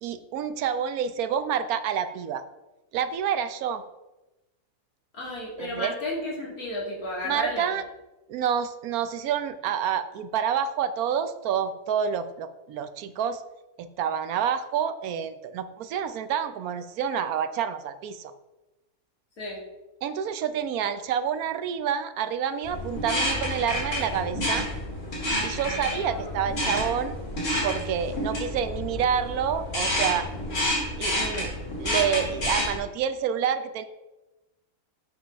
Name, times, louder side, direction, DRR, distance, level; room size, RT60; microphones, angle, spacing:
voice 1, 0.0-2.4 2.9-3.8 5.6-5.9 7.2-7.8 8.3-13.4 13.8-18.3 20.0-24.7 25.4-27.2 27.6-30.3 31.0-33.8, right 8 dB, 80° right, 11 dB, 1.1 m, -28 dB
voice 2, 5.1-7.7 19.4-19.6 26.0-26.3, left 1 dB, 75° left, -4 dB, 3.0 m, -33 dB
sound 1, 22.6-32.8, left 1 dB, 55° left, 2.7 m, -29 dB
7.7 x 5.5 x 5.4 m, 1.0 s
omnidirectional pair, 1.6 m